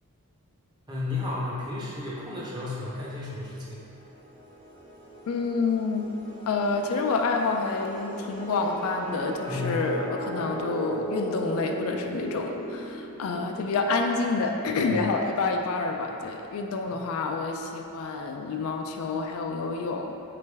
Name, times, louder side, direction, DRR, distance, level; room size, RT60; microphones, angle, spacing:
voice 1, 0.9-3.8 9.5-9.9 14.9-15.0 16.9-17.0, left 2 dB, 20° right, -6 dB, 0.6 m, -33 dB
sound 1, 3.6-14.1, right 1 dB, 60° right, 1.1 m, -38 dB
voice 2, 5.3-6.1 6.5-20.1, left 4 dB, 65° left, 3 dB, 0.3 m, -28 dB
3.9 x 3.3 x 3.2 m, 2.7 s
head